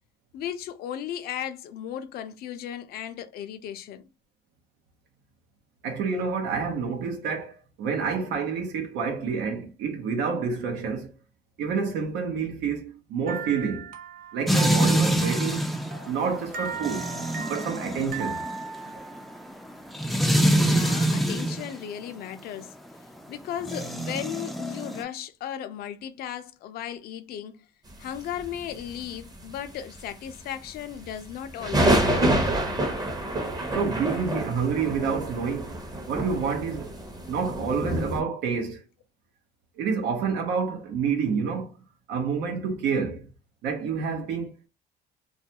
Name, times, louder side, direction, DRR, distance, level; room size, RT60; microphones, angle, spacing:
voice 1, 0.3-4.0 20.6-22.8 23.3-27.7 28.0-32.4 37.4-37.5, left 10 dB, 65° left, 0.4 m, -36 dB
voice 2, 5.8-11.1 11.6-13.9 14.3-15.7 16.1-17.1 17.4-18.4 18.9-19.1 33.7-35.8 36.1-36.9 37.3-38.8 39.8-41.7 42.1-43.3 43.6-44.7, right 5 dB, 90° right, 0.8 m, -28 dB
sound 1, 13.3-19.5, right 5 dB, 55° right, 0.7 m, -38 dB
sound 2, 14.5-21.7 23.6-25.0, right 1 dB, ahead, 0.3 m, -25 dB
sound 3, 28.4-29.7 29.9-30.4 30.7-30.8 31.0-38.2, right 1 dB, 25° right, 0.7 m, -27 dB
2.3 x 2.2 x 2.8 m
cardioid pair, 110°, 17 cm